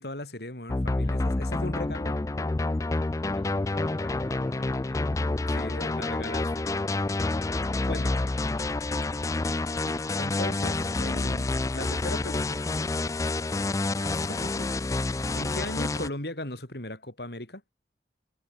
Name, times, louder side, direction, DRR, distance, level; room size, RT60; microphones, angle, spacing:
voice 1, 0.0-2.2 5.5-6.7 7.8-8.1 10.1-12.6 13.9-14.8 15.3-17.6, left 1 dB, 65° left, 4.9 m, -37 dB
sound 1, 0.7-16.1, left 2 dB, 20° left, 0.4 m, -28 dB
voice 2, 3.2-5.0 5.4-5.5 7.5-8.8, equal, ahead, 7.8 m, -49 dB
head